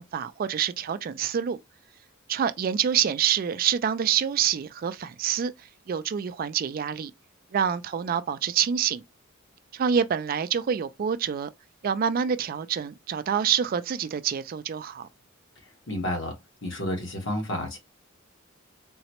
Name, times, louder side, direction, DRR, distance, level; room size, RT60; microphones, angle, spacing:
voice 1, 0.0-1.6 2.3-5.5 5.9-7.1 7.5-9.0 9.7-11.5 11.8-15.1, right 8 dB, 45° right, 0.3 m, -26 dB
voice 2, 15.9-16.3 16.6-17.8, left 1 dB, 60° left, 1.1 m, -30 dB
3.8 x 2.1 x 2.9 m
head